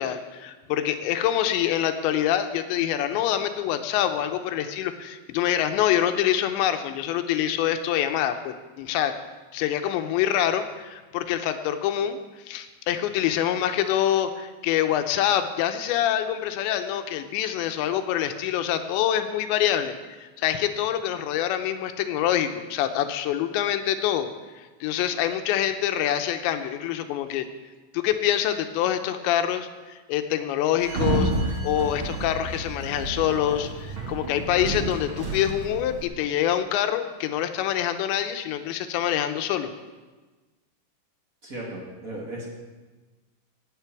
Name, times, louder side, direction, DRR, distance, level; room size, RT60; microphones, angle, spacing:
voice 1, 0.0-9.1 9.5-12.2 12.5-27.5 27.9-39.7, left 11 dB, 80° left, 8 dB, 2.9 m, -25 dB
Sliding door, 30.8-36.0, right 2 dB, 75° right, 1.1 m, -30 dB
voice 2, 41.4-42.5, right 1 dB, 40° right, -3 dB, 1.2 m, -36 dB
17.0 x 9.9 x 4.7 m, 1.3 s
omnidirectional pair, 5.4 m